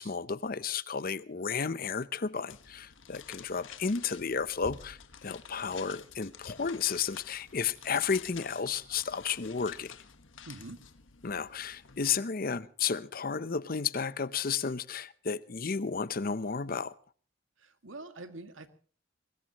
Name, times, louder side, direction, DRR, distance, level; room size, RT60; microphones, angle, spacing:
voice 1, 0.0-9.9 11.2-16.9, left 6 dB, 45° left, 0.7 m, -33 dB
sound 1, 2.5-12.2, left 8 dB, 80° left, 1.4 m, -51 dB
sound 2, 4.6-6.0, equal, 30° left, 2.7 m, -51 dB
voice 2, 10.5-10.8 17.6-18.7, right 2 dB, 80° right, 2.0 m, -45 dB
22.5 x 20.5 x 3.0 m
head